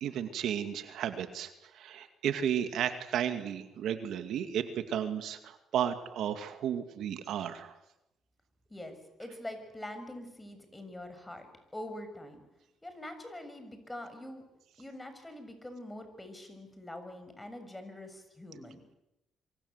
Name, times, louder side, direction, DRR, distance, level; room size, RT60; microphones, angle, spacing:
voice 1, 0.0-7.7, right 9 dB, 75° right, 8 dB, 2.2 m, -33 dB
voice 2, 8.7-12.4 12.8-14.4 14.8-18.8, left 1 dB, 15° left, 8 dB, 6.6 m, -44 dB
27.0 x 24.5 x 8.1 m, 0.89 s
cardioid pair, 90°, 0 cm